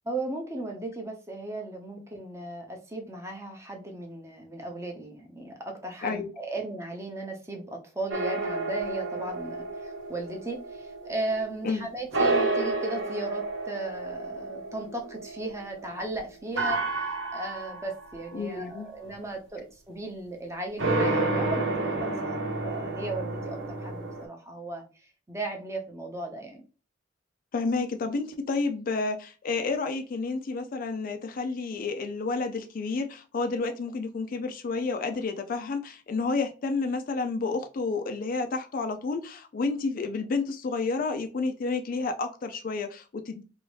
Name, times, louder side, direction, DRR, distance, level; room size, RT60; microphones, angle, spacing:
voice 1, 0.0-26.6, right 2 dB, 15° right, 2 dB, 0.7 m, -36 dB
voice 2, 6.0-6.3 11.6-11.9 18.3-18.9 27.5-43.4, left 4 dB, 45° left, 7 dB, 0.4 m, -30 dB
sound 1, 8.1-11.8 12.1-16.0 16.6-18.4 20.8-24.3, right 2 dB, 80° right, 1.0 m, -30 dB
3.1 x 2.7 x 3.1 m, 0.34 s
head